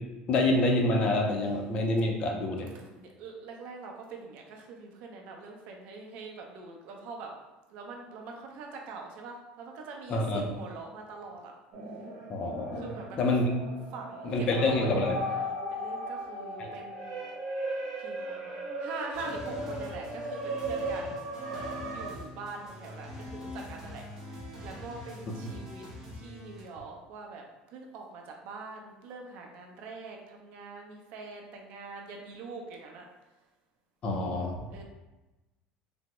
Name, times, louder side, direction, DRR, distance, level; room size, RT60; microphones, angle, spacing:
voice 1, 0.3-2.7 10.1-10.4 12.3-12.8 13.2-13.4 14.2-15.2 16.6-16.8 34.0-34.6, left 2 dB, 35° left, 2 dB, 0.4 m, -27 dB
voice 2, 2.7-7.3 7.7-11.5 12.8-13.2 13.9-15.4 15.7-17.2 18.0-21.2 21.5-25.8 26.1-33.1 34.7-34.8, right 4 dB, 55° right, 2 dB, 0.5 m, -44 dB
sound 1, 11.7-22.1, right 1 dB, 75° right, 1.0 m, -37 dB
sound 2, 19.1-26.6, left 1 dB, 15° right, 0.9 m, -44 dB
3.4 x 2.0 x 2.9 m, 1.1 s
cardioid pair, 165°, 3 cm